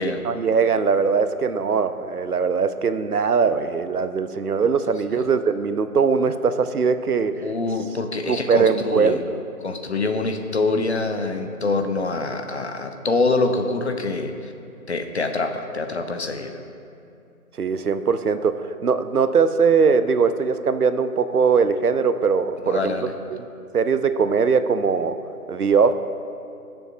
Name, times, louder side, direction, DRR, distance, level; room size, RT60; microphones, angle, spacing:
voice 1, 0.0-7.4 8.3-9.4 17.6-22.9 23.7-25.1 25.5-25.9, right 5 dB, 75° right, 11 dB, 0.7 m, -21 dB
voice 2, 7.3-9.2 9.6-14.5 14.9-16.6 22.6-23.1, left 3 dB, 45° left, 6 dB, 0.7 m, -25 dB
20.0 x 6.9 x 2.6 m, 2.7 s
figure-of-eight pair, 150°, 45 cm